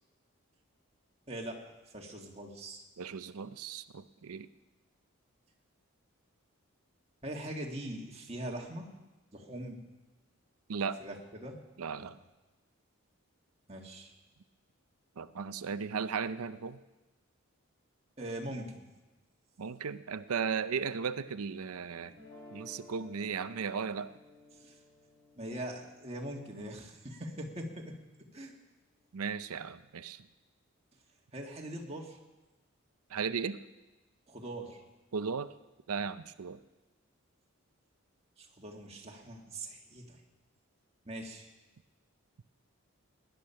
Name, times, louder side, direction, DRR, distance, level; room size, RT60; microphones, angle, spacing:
voice 1, 1.3-2.8 7.2-8.9 9.3-9.8 11.0-11.6 12.0-12.1 13.7-14.1 18.2-18.8 24.5-24.8 25.3-28.0 28.3-28.5 31.3-32.2 34.3-34.8 38.4-40.2 41.0-41.5, right 1 dB, 30° right, 0 dB, 1.8 m, -42 dB
voice 2, 3.0-4.5 10.7-11.0 11.8-12.2 15.2-16.8 19.6-22.1 22.5-24.1 29.1-30.3 33.1-33.6 35.1-35.5 35.9-36.6, right 6 dB, 85° right, 14 dB, 0.6 m, -36 dB
sound 1, 22.1-28.2, left 2 dB, 45° left, 3.7 m, -57 dB
18.0 x 10.5 x 5.7 m, 1.1 s
head